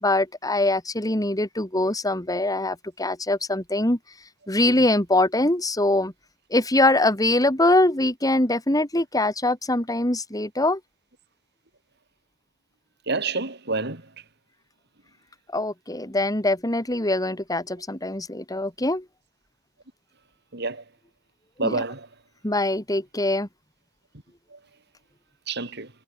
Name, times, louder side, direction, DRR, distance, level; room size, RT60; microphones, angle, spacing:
voice 1, 0.0-4.0 4.5-6.1 6.5-10.8 15.5-19.0 21.6-21.8 22.4-23.5, left 2 dB, 20° left, 3.4 m, -23 dB
voice 2, 13.1-14.0 20.5-20.8 21.6-22.1 24.5-24.6 25.5-25.9, right 3 dB, 60° right, 4.4 m, -28 dB
head